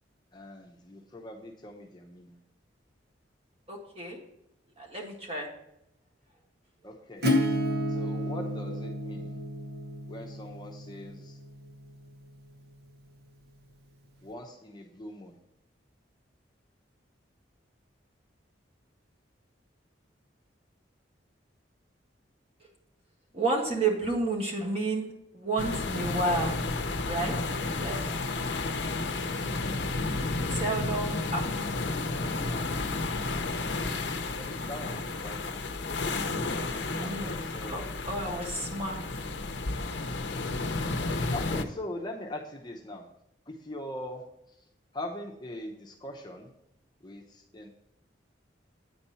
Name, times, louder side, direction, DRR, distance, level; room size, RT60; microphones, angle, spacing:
voice 1, 0.3-2.4 6.8-7.3 7.9-9.4 10.1-11.4 14.2-15.4 33.0-35.8 37.0-37.9 40.4-43.1 43.5-44.7 44.9-46.5 47.0-47.7, left 1 dB, 20° left, 0 dB, 0.8 m, -42 dB
voice 2, 3.7-4.2 4.8-5.5 23.3-26.6 27.0-27.3 27.8-28.1 30.5-31.7 32.3-32.6 36.9-37.4 37.7-39.0, right 2 dB, 30° right, 0 dB, 1.7 m, -31 dB
Acoustic guitar / Strum, 7.2-12.7, left 1 dB, 55° right, 1.0 m, -32 dB
sound 1, 25.6-41.6, left 3 dB, 65° left, 0.7 m, -32 dB
9.2 x 4.3 x 5.5 m, 0.81 s
head